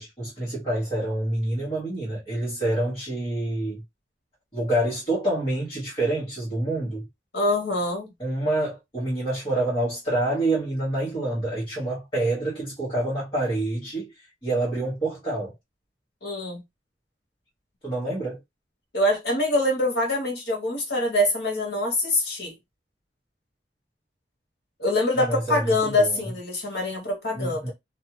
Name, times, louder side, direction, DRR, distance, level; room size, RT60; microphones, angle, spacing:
voice 1, 0.0-3.8 4.5-7.1 8.2-15.5 17.8-18.4 25.1-26.3 27.3-27.7, right 1 dB, 25° left, 1.3 m, -27 dB
voice 2, 7.3-8.1 16.2-16.6 18.9-22.6 24.8-27.7, left 1 dB, 60° left, 1.2 m, -24 dB
2.7 x 2.3 x 2.9 m
head